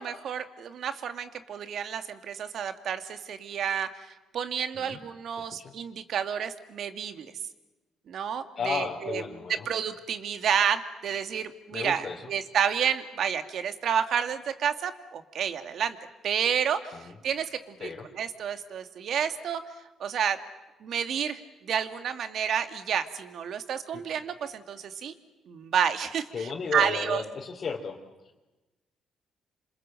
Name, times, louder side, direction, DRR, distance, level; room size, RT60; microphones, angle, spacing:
voice 1, 0.0-7.3 8.1-9.2 9.5-16.0 16.2-19.6 20.0-20.4 20.8-25.1 25.5-27.2, right 8 dB, 65° right, 8 dB, 2.2 m, -30 dB
voice 2, 8.6-9.7 11.7-12.2 17.0-17.1 17.8-18.1 23.9-24.0 26.3-28.0, left 5 dB, 50° left, -2 dB, 3.7 m, -33 dB
28.0 x 26.5 x 7.8 m, 1.1 s
cardioid pair, 90°, 0 cm